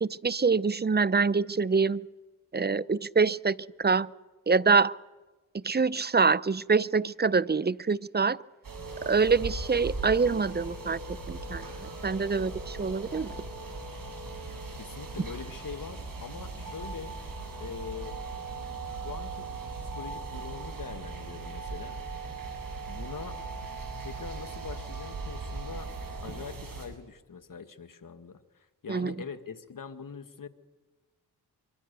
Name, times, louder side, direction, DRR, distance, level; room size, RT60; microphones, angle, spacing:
voice 1, 0.0-2.0 2.5-4.1 4.5-4.9 5.5-8.4 9.1-11.0 11.3-13.3 28.9-29.1, right 4 dB, 25° right, 20 dB, 0.7 m, -25 dB
sound 1, 8.6-26.9, right 3 dB, 55° right, 7.3 m, -39 dB
voice 2, 14.8-17.2 17.6-18.2 18.9-19.5 19.8-22.0 22.9-23.4 24.0-25.9 26.2-30.5, left 6 dB, 55° left, 10 dB, 1.9 m, -43 dB
24.0 x 23.5 x 6.9 m, 1.2 s
cardioid pair, 50°, 39 cm